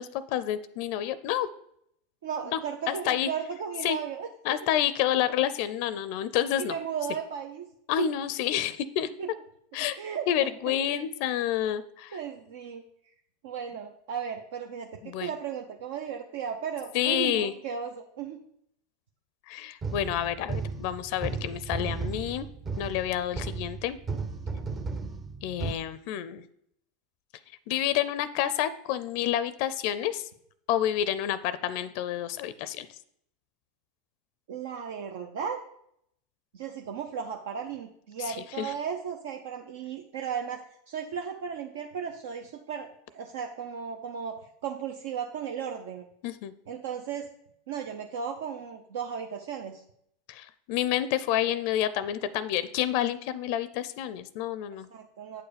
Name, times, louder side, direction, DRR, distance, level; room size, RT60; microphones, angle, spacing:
voice 1, 0.0-1.5 2.5-2.6 2.9-3.3 3.8-4.0 4.4-6.7 7.9-9.1 9.7-10.0 10.3-12.2 15.0-15.3 16.9-17.5 19.5-22.5 22.8-24.0 25.4-26.4 27.7-30.3 30.7-32.9 38.3-38.7 46.2-46.5 50.3-54.9, left 11 dB, 60° left, 15 dB, 0.4 m, -29 dB
voice 2, 2.2-4.3 6.6-7.7 8.0-8.1 9.2-9.3 10.0-10.3 10.7-11.0 12.1-12.8 13.4-18.4 34.5-35.6 36.5-40.6 40.9-44.4 44.6-46.0 46.7-47.3 47.7-49.8 54.9-55.4, right 7 dB, 75° right, 4 dB, 0.6 m, -35 dB
sound 1, 19.8-25.7, right 4 dB, 25° right, 0.7 m, -35 dB
8.5 x 4.7 x 5.0 m, 0.72 s
supercardioid pair, 115°, 0 cm